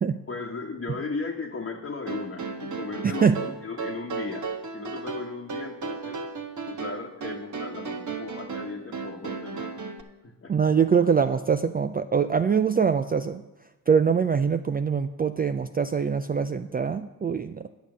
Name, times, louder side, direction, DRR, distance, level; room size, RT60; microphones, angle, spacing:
voice 1, 0.3-4.5 4.7-6.2 6.7-9.8 10.2-10.5, left 4 dB, 30° left, -2 dB, 1.3 m, -36 dB
sound 1, 2.1-10.0, right 4 dB, 40° right, 1.2 m, -35 dB
voice 2, 3.0-3.4 10.5-13.4 13.9-17.7, right 6 dB, 20° right, 9 dB, 0.4 m, -23 dB
9.5 x 6.6 x 6.2 m, 1.0 s
supercardioid pair, 55°, 44 cm